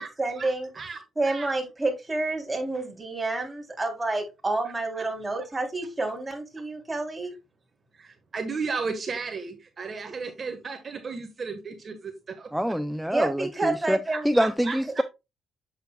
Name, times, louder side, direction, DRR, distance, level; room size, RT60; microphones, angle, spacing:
voice 1, 0.0-0.7 1.1-7.3 13.1-14.4, right 2 dB, 20° right, 3.2 m, -29 dB
voice 2, 7.9-12.1 12.4-12.5 14.3-15.0, right 4 dB, 40° right, 1.3 m, -34 dB
voice 3, 12.5-14.0 14.2-15.0, equal, ahead, 0.5 m, -25 dB
7.9 x 6.9 x 2.3 m
cardioid pair, 90°, 0 cm